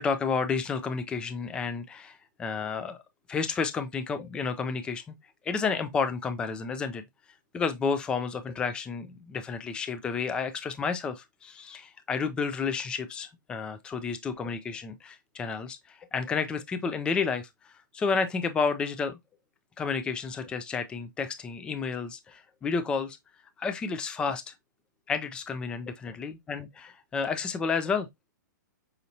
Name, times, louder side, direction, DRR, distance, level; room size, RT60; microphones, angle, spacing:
voice 1, 0.0-3.0 3.3-5.0 5.4-7.0 7.5-17.5 17.9-19.2 19.8-23.2 23.6-24.5 25.1-28.1, left 5 dB, 10° left, 0.3 m, -31 dB
5.2 x 2.8 x 2.6 m
hypercardioid pair, 145°, 10 cm